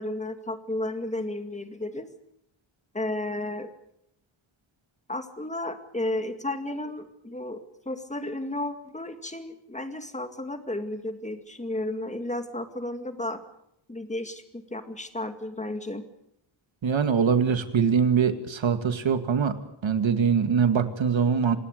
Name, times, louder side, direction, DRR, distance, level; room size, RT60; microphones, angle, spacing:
voice 1, 0.0-2.1 2.9-3.7 5.1-13.4 13.9-16.0, left 1 dB, 15° left, 7 dB, 2.1 m, -33 dB
voice 2, 16.8-19.5 19.8-21.6, right 6 dB, 65° right, 8 dB, 2.2 m, -23 dB
28.0 x 19.5 x 6.7 m, 0.78 s
wide cardioid pair, 155°, 49 cm